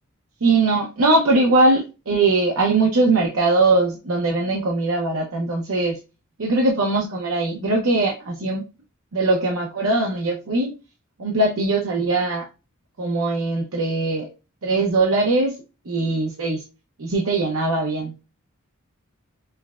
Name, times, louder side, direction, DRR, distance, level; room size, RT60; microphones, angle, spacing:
voice 1, 0.4-6.0 6.4-8.6 9.1-10.7 11.2-12.5 13.0-14.3 14.6-15.5 15.9-16.6 17.0-18.1, right 2 dB, 70° right, 0.7 m, -20 dB
5.6 x 2.2 x 2.3 m
head